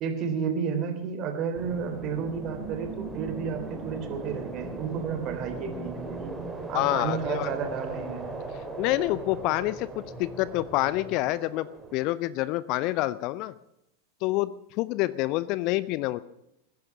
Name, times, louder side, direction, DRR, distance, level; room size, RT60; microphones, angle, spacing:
voice 1, 0.0-6.3 6.7-8.4, right 6 dB, 35° right, 5 dB, 3.4 m, -32 dB
sound 1, 1.5-12.1, right 3 dB, 10° right, 2.7 m, -38 dB
voice 2, 6.7-7.5 8.8-11.7 11.9-13.5 14.2-14.5 14.8-16.2, left 17 dB, 40° left, 18 dB, 0.6 m, -27 dB
20.5 x 10.5 x 6.1 m, 0.83 s
figure-of-eight pair, 90°, 0 cm